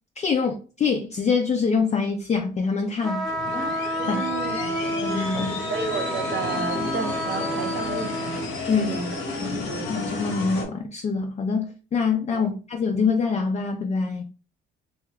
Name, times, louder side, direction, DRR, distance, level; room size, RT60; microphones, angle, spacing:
voice 1, 0.2-3.3 4.1-4.2 5.0-5.6 8.7-9.0 9.4-14.2, left 5 dB, 35° left, 0.4 m, -25 dB
sound 1, 3.0-8.5, equal, ahead, 0.7 m, -29 dB
sound 2, 3.3-10.7, left 3 dB, 85° left, 1.1 m, -32 dB
voice 2, 3.9-4.6 5.7-8.4 8.8-9.2 9.6-10.1 12.3-12.5, right 5 dB, 65° right, 0.6 m, -32 dB
2.7 x 2.3 x 3.2 m
cardioid pair, 90°, 20 cm